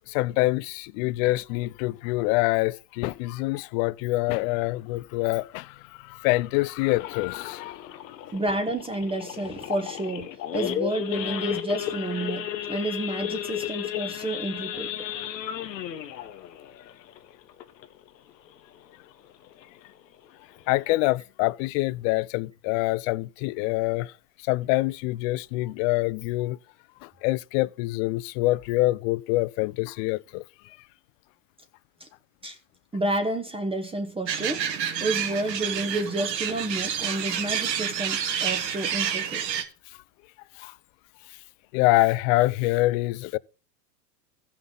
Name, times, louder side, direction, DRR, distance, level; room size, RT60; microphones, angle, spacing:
voice 1, 0.1-7.9 20.7-24.1 24.5-26.6 27.0-30.4 40.6-40.7 41.7-43.4, left 20 dB, 55° left, 0.5 m, -25 dB
Idling / Accelerating revving vroom / Sawing, 7.0-18.1 18.5-18.7 18.9-19.0 19.5-19.8 20.3-20.4 20.6-20.9, left 10 dB, 90° left, 1.1 m, -34 dB
voice 2, 8.3-10.3 10.5-14.9 32.0-32.1 32.4-32.6 32.9-34.7 35.0-39.4, right 2 dB, 10° right, 1.0 m, -30 dB
sound 1, 34.3-39.6, right 8 dB, 85° right, 1.6 m, -29 dB
15.0 x 5.8 x 3.9 m
hypercardioid pair, 100°, 48 cm